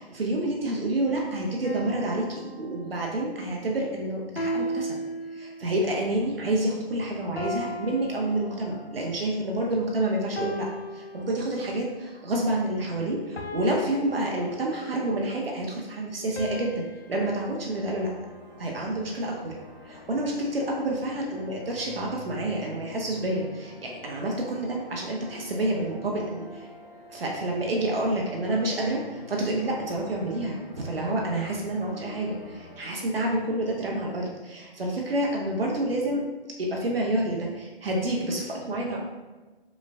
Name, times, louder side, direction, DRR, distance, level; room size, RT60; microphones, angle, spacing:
voice 1, 0.0-5.0 5.3-10.7 10.9-18.1 18.6-19.5 19.9-26.7 27.1-36.2 36.6-39.0, right 1 dB, 65° right, -2 dB, 0.7 m, -28 dB
sound 1, 1.6-3.3 4.4-5.9 7.4-9.0 10.4-11.9 13.4-15.1 16.4-17.4, equal, 85° left, 0.5 m, -36 dB
sound 2, 17.0-32.8, left 2 dB, 5° left, 1.0 m, -47 dB
5.2 x 2.3 x 2.3 m, 1.2 s
figure-of-eight pair, 140°, 31 cm